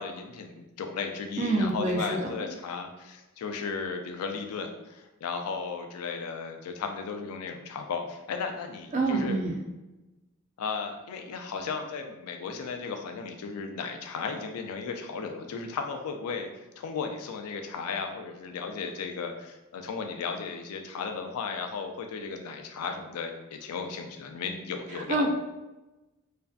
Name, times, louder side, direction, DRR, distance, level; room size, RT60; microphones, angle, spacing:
voice 1, 0.0-9.4 10.6-25.3, left 5 dB, 90° left, 5 dB, 0.3 m, -35 dB
voice 2, 1.4-2.3 8.9-9.6 24.9-25.3, right 2 dB, 35° right, 1 dB, 0.3 m, -27 dB
2.5 x 2.1 x 2.3 m, 1.1 s
head